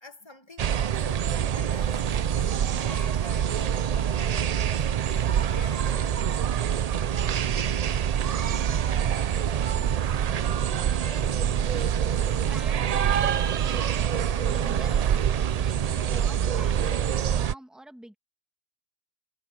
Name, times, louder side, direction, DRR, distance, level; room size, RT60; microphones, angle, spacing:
voice 1, 0.0-6.7, equal, 25° left, 1.3 m, -46 dB
sound 1, 0.6-17.5, right 9 dB, 55° right, 0.4 m, -25 dB
voice 2, 7.6-11.3 11.7-11.9 12.5-18.1, right 1 dB, ahead, 2.3 m, -49 dB
sound 2, 10.0-14.9, right 3 dB, 75° right, 2.7 m, -50 dB
omnidirectional pair, 1.1 m